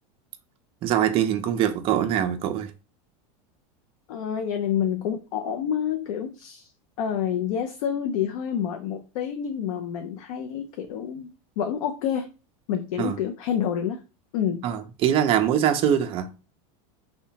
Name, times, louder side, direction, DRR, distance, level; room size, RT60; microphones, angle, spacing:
voice 1, 0.8-2.7 13.0-13.1 14.6-16.3, right 10 dB, 30° right, 0.3 m, -23 dB
voice 2, 4.1-6.7 7.0-12.3 12.7-14.0 14.3-14.6, left 8 dB, 75° left, 0.4 m, -28 dB
2.7 x 2.1 x 2.7 m
supercardioid pair, 150°, 18 cm